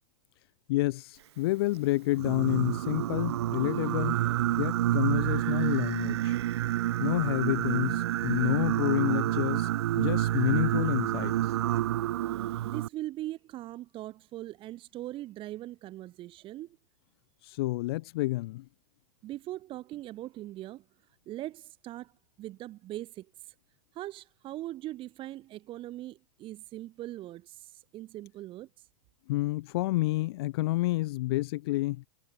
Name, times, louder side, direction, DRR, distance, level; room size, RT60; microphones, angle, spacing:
voice 1, 0.7-1.1 1.4-4.2 4.6-6.3 7.0-9.7 10.0-11.3 17.6-18.6 29.3-32.0, left 19 dB, 60° left, 1.0 m, -29 dB
Singing, 2.2-12.9, right 14 dB, 65° right, 1.8 m, -28 dB
voice 2, 12.3-16.7 19.2-20.8 21.3-22.1 22.4-23.5 23.9-28.9, right 15 dB, 35° right, 1.6 m, -41 dB
hypercardioid pair, 105°, 15 cm